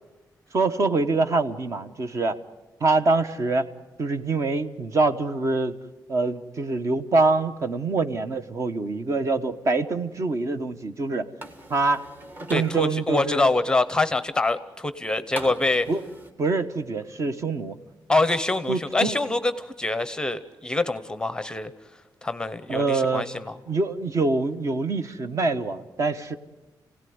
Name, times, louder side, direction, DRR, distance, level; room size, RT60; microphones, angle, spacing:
voice 1, 0.5-2.4 2.8-3.7 4.0-5.7 6.1-11.3 11.7-12.0 12.5-13.5 15.9-16.0 16.4-17.8 18.7-19.2 22.7-23.3 23.7-26.4, right 3 dB, 40° right, 10 dB, 1.1 m, -25 dB
sound 1, 11.4-12.7 15.4-16.3, right 1 dB, 25° right, 1.6 m, -40 dB
voice 2, 12.5-15.9 18.1-21.7 22.2-23.6, left 2 dB, 10° left, 13 dB, 0.8 m, -25 dB
28.5 x 17.5 x 9.5 m, 1.1 s
wide cardioid pair, 170°, 8 cm